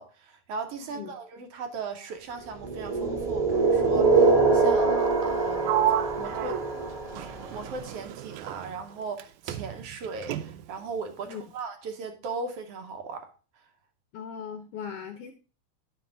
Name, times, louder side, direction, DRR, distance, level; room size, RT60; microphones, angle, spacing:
voice 1, 0.0-5.8 6.2-6.6 7.2-7.3 7.5-13.3, right 4 dB, 70° right, 6 dB, 1.6 m, -37 dB
voice 2, 0.8-1.1 11.3-11.4 14.1-15.3, left 7 dB, 75° left, 7 dB, 1.4 m, -38 dB
sound 1, 2.6-7.6, right 3 dB, 20° right, 1.2 m, -24 dB
Sliding door, 5.6-9.2 9.5-10.8, right 12 dB, 85° right, 2.0 m, -32 dB
10.0 x 5.7 x 3.7 m, 0.36 s
omnidirectional pair, 3.4 m